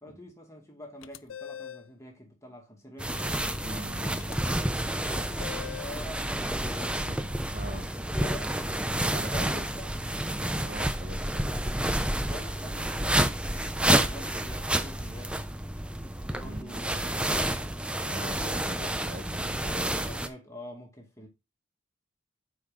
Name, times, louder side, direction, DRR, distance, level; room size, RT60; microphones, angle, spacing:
voice 1, 0.0-3.2 3.7-7.0 8.0-8.6 9.3-9.9 12.2-15.4 16.3-18.0 19.0-19.3 20.0-21.3, equal, 15° left, 2.1 m, -46 dB
sound 1, 1.0-1.9 4.2-4.4 5.4-6.0, left 9 dB, 75° left, 0.4 m, -41 dB
sound 2, 3.0-20.3, right 1 dB, 5° right, 0.5 m, -29 dB
voice 2, 3.6-4.3 7.1-7.9 9.1-9.7 10.6-11.5 16.4-16.8 18.0-20.1, right 1 dB, 45° right, 1.1 m, -43 dB
9.5 x 4.7 x 3.7 m
head